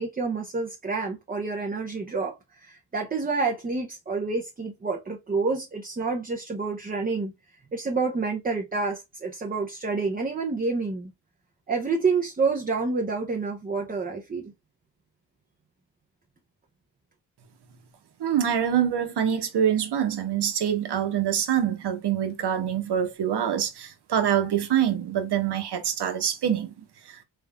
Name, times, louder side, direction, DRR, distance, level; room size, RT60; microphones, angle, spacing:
voice 1, 0.0-7.3 7.7-11.1 11.7-14.5, right 4 dB, 20° right, 0.6 m, -28 dB
voice 2, 18.2-27.2, right 9 dB, 65° right, 1.0 m, -25 dB
3.5 x 3.3 x 2.2 m
cardioid pair, 95°, 43 cm